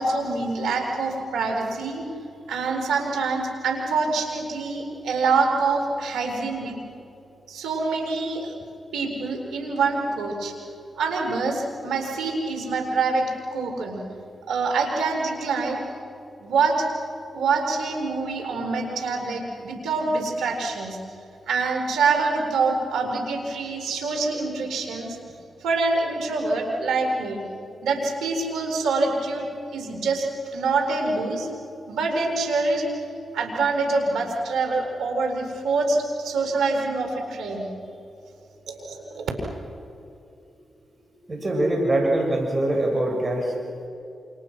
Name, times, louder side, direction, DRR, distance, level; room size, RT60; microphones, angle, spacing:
voice 1, 0.0-2.0 2.5-6.8 7.5-8.5 8.9-10.5 11.0-14.0 14.5-15.8 16.4-16.9 17.3-21.0 21.5-25.2 25.6-27.4 27.8-29.5 29.7-31.5 31.9-32.9 33.3-37.7 38.7-39.3, right 3 dB, 85° right, 2 dB, 4.8 m, -25 dB
voice 2, 41.3-43.5, right 1 dB, 40° right, 0 dB, 6.7 m, -23 dB
29.0 x 28.0 x 6.3 m, 2.7 s
supercardioid pair, 40°, 0 cm